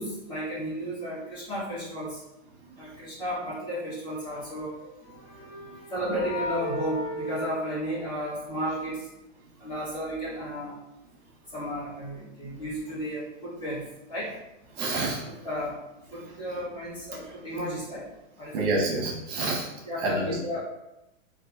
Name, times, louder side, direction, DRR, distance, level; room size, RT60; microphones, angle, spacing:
voice 1, 0.0-2.2 2.8-4.7 5.9-9.1 9.6-10.8 11.5-14.3 15.4-15.8 16.1-18.1 18.4-18.7 19.8-20.6, equal, 10° left, -11 dB, 1.3 m, -33 dB
sound 1, 4.7-8.6, left 1 dB, 45° left, 0.8 m, -37 dB
voice 2, 14.8-15.2 18.5-19.7 20.0-20.4, right 2 dB, 40° right, -3 dB, 1.1 m, -27 dB
3.2 x 2.5 x 2.2 m, 0.90 s
hypercardioid pair, 155°, 39 cm